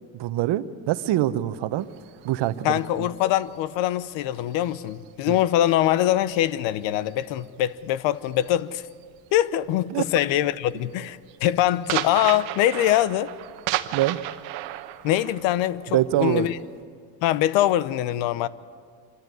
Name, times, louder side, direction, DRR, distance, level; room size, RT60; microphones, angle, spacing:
voice 1, 0.2-1.9 2.2-3.1 9.9-10.0 13.9-14.2 15.9-16.5, right 14 dB, 60° right, 1.0 m, -24 dB
sound 1, 1.8-5.7 6.0-9.4 9.7-10.0 10.4-16.8, right 15 dB, 85° right, 1.1 m, -35 dB
voice 2, 2.6-8.8 9.3-13.3 15.0-16.6 17.2-18.5, left 13 dB, 70° left, 0.9 m, -23 dB
25.0 x 14.0 x 9.7 m
supercardioid pair, 90°, 47 cm